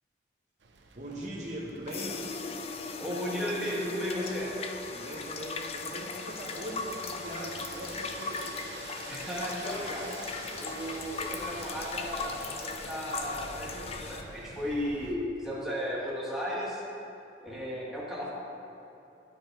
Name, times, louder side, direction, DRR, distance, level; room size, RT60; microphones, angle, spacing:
sound 1, 0.6-15.2, right 3 dB, 85° right, 0.7 m, -48 dB
voice 1, 1.0-2.2 4.9-8.5 15.5-15.7, right 1 dB, 45° right, -4 dB, 0.9 m, -40 dB
sound 2, 1.9-14.2, left 4 dB, 35° left, 0.4 m, -38 dB
voice 2, 3.0-4.6 9.1-10.2 10.5-16.8 17.4-18.3, equal, ahead, -7 dB, 1.5 m, -35 dB
10.5 x 5.0 x 4.5 m, 2.8 s
head